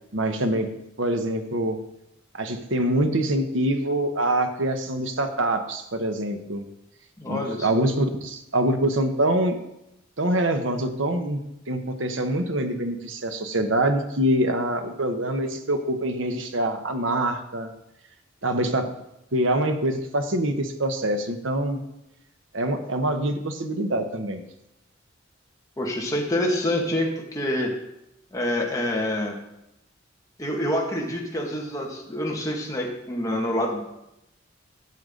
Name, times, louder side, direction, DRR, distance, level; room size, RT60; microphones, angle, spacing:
voice 1, 0.1-1.8 2.3-6.7 7.3-9.7 10.2-17.7 18.4-18.9 19.3-21.8 22.5-24.4, right 1 dB, 70° right, 6 dB, 1.2 m, -25 dB
voice 2, 7.2-7.7 25.8-27.7 28.3-29.4 30.4-33.8, left 1 dB, 15° left, -2 dB, 1.9 m, -26 dB
13.0 x 8.0 x 3.9 m, 0.87 s
head